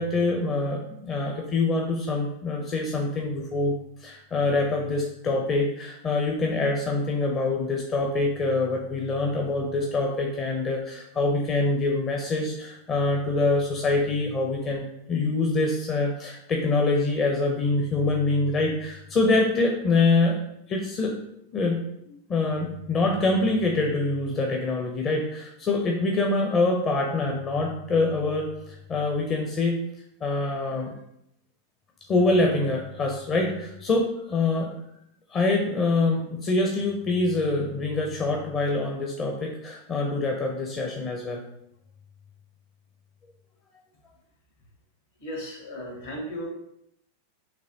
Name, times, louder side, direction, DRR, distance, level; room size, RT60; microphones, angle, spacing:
voice 1, 0.0-3.8 4.0-20.4 20.7-21.2 21.5-21.8 22.3-29.8 30.2-30.9 32.1-34.7 35.3-41.4, left 2 dB, 25° left, 1 dB, 0.6 m, -25 dB
voice 2, 45.2-46.5, equal, 65° left, -2 dB, 1.8 m, -35 dB
6.0 x 3.0 x 2.8 m, 0.77 s
figure-of-eight pair, 90°, 0 cm